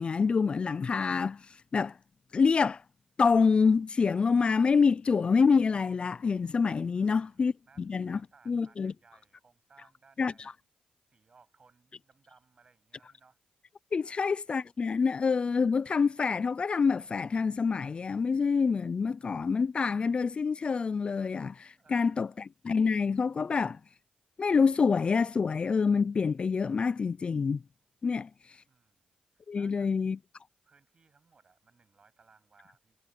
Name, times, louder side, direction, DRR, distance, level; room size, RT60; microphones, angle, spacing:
voice 1, 0.0-1.5 1.7-2.0 2.3-2.8 3.2-7.5 7.8-8.2 8.5-8.9 10.2-10.3 13.9-23.8 24.4-27.6 28.0-28.3 29.5-30.2, left 5 dB, 40° left, 0.4 m, -26 dB
voice 2, 6.9-10.6 11.1-13.4 14.0-14.4 21.7-22.4 28.6-29.1 29.3-30.1 30.6-33.0, right 4 dB, 40° right, 8.0 m, -63 dB
cardioid pair, 90°, 3 cm